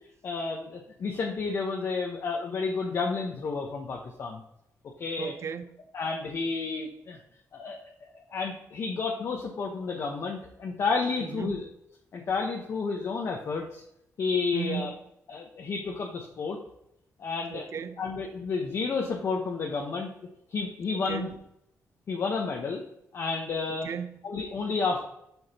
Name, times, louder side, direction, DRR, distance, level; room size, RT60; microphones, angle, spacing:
voice 1, 0.2-4.4 5.0-5.3 5.9-7.2 7.5-11.7 12.1-13.8 14.2-14.9 15.3-16.6 17.2-17.7 18.0-20.1 20.5-21.3 22.1-22.8 23.1-23.9 24.2-25.0, left 4 dB, 50° left, 1.0 m, -31 dB
voice 2, 5.2-5.8 11.2-11.6 14.5-15.0 17.5-18.1 20.9-21.3 23.7-24.3, right 7 dB, 50° right, 0.5 m, -36 dB
7.8 x 6.4 x 2.9 m
cardioid pair, 140°, 6 cm